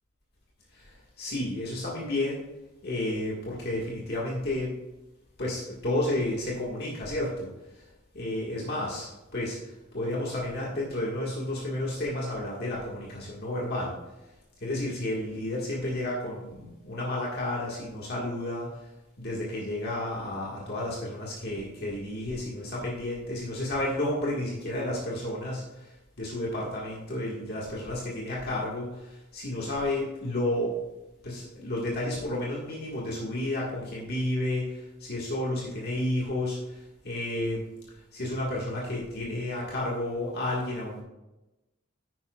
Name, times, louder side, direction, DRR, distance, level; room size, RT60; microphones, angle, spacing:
voice 1, 0.7-2.4 2.8-4.7 5.4-7.9 8.1-14.0 14.6-18.8 19.2-30.7 31.2-37.6 38.1-41.0, left 1 dB, 50° left, -4 dB, 1.8 m, -31 dB
11.0 x 9.2 x 2.4 m, 1.0 s
head